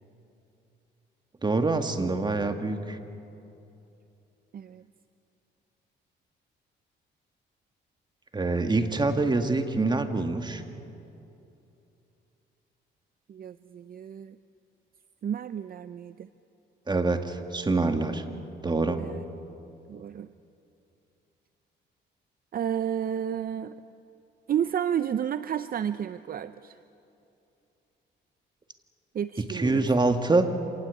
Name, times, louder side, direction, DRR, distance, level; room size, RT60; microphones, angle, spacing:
voice 1, 1.4-3.0 8.3-10.6 16.9-18.2 18.6-19.0 29.5-30.5, right 3 dB, 20° right, 7 dB, 2.0 m, -25 dB
voice 2, 13.3-14.4 15.2-16.3 19.0-19.2 19.9-20.3 22.5-23.8 24.5-26.8 29.1-29.9, right 9 dB, 50° right, 13 dB, 0.6 m, -31 dB
27.0 x 18.5 x 8.4 m, 2.8 s
cardioid pair, 90°, 20 cm